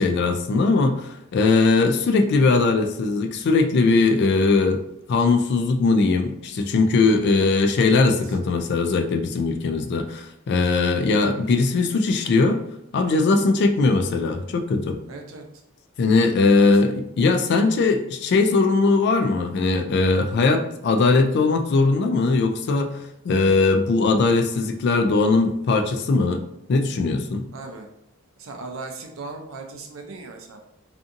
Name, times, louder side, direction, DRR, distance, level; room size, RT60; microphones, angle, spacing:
voice 1, 0.0-4.8 5.1-12.6 12.9-15.0 16.0-22.9 23.2-26.4 26.7-27.5, left 3 dB, 50° left, 5 dB, 0.3 m, -20 dB
voice 2, 7.9-8.3 15.1-15.4 16.6-16.8 27.5-27.9 28.4-30.6, right 3 dB, 65° right, 3 dB, 0.5 m, -38 dB
2.6 x 2.5 x 2.5 m, 0.81 s
head